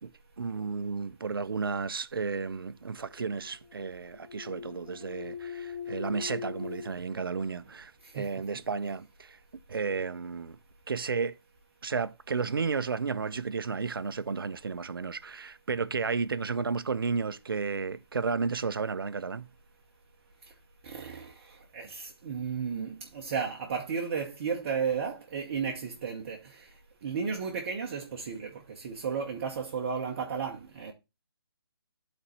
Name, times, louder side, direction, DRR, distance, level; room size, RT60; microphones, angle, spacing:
voice 1, 0.4-9.4 9.7-10.6 10.9-11.4 11.8-19.5, right 5 dB, 60° right, 0.6 m, -33 dB
sound 1, 3.0-6.9, left 7 dB, 50° left, 2.2 m, -41 dB
voice 2, 20.8-26.7 27.0-30.9, right 6 dB, 30° right, 1.0 m, -34 dB
12.0 x 4.2 x 3.2 m
figure-of-eight pair, 145°, 13 cm